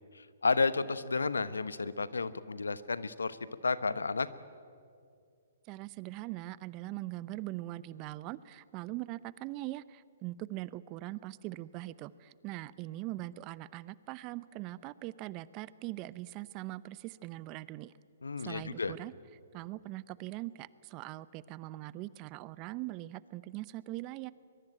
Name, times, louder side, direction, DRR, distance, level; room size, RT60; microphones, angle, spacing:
voice 1, 0.1-3.4 3.6-4.3 18.2-18.9, left 4 dB, 85° left, 15 dB, 1.1 m, -32 dB
voice 2, 5.7-17.9 18.4-19.1 19.5-24.3, right 17 dB, 35° right, 18 dB, 0.7 m, -41 dB
22.5 x 22.5 x 9.0 m, 2.3 s
hypercardioid pair, 130°, 0 cm